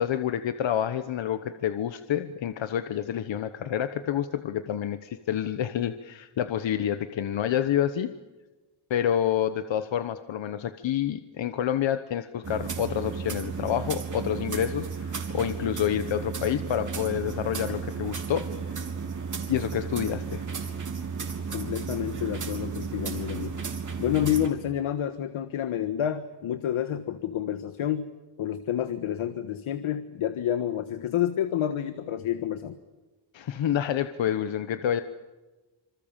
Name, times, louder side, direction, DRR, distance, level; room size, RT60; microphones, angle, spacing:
voice 1, 0.0-8.1 8.9-18.8 19.5-20.4 33.3-35.0, left 10 dB, 65° left, 10 dB, 1.2 m, -28 dB
sound 1, 12.4-24.5, right 5 dB, 40° right, 3.6 m, -34 dB
voice 2, 21.5-23.6 24.0-28.1 28.4-32.8, left 10 dB, 85° left, 9 dB, 1.6 m, -29 dB
27.0 x 26.5 x 7.4 m, 1.2 s
wide cardioid pair, 145°, 48 cm